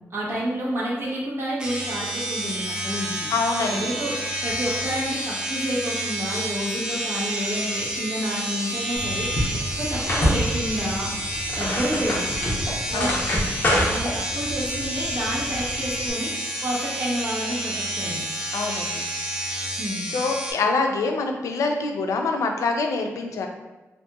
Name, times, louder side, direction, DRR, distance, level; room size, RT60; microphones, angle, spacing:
voice 1, 0.1-3.3 3.7-9.3 9.8-11.1 11.5-12.2 12.9-13.1 13.9-18.2 19.8-20.1, equal, 45° right, -6 dB, 0.9 m, -29 dB
sound 1, 1.6-20.5, right 1 dB, 15° right, 0.4 m, -29 dB
voice 2, 3.3-3.8 12.9-13.1 18.5-19.0 20.1-23.5, left 3 dB, 85° left, 3 dB, 0.4 m, -25 dB
sound 2, 9.0-16.1, equal, 40° left, 0.7 m, -27 dB
2.8 x 2.5 x 2.2 m, 1.1 s
wide cardioid pair, 120°, 5 cm